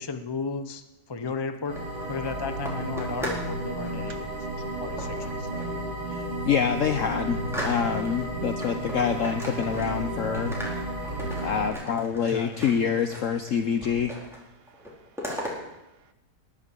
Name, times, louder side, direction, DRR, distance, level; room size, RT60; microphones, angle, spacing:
voice 1, 0.0-1.8 2.1-4.3 4.8-5.5 12.3-12.6, left 4 dB, 40° left, 9 dB, 0.3 m, -34 dB
sound 1, 1.5-3.5 3.8-4.2 5.0-5.8 6.2-6.3 6.7-8.2 8.6-10.1 10.3-13.5 13.8-14.4 14.7-15.5, equal, ahead, 4.2 m, -38 dB
sound 2, 1.7-11.7, right 1 dB, 60° right, 6.0 m, -33 dB
voice 2, 6.1-10.5 11.4-14.1, left 7 dB, 60° left, 8 dB, 1.0 m, -26 dB
voice 3, 10.3-11.5 14.5-16.1, right 7 dB, 75° right, 10 dB, 1.7 m, -57 dB
20.0 x 8.6 x 8.3 m, 0.94 s
omnidirectional pair, 1.8 m